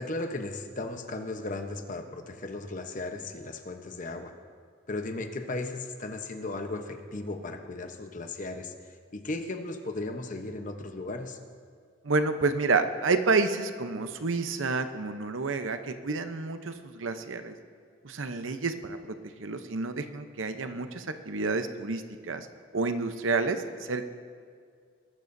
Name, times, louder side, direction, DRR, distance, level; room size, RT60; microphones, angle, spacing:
voice 1, 0.0-4.3 4.9-11.4, left 2 dB, 40° left, 6 dB, 0.9 m, -36 dB
voice 2, 12.0-17.5 18.0-22.5 22.7-24.1, right 3 dB, 90° right, 8 dB, 0.8 m, -29 dB
20.5 x 12.5 x 2.7 m, 2.2 s
head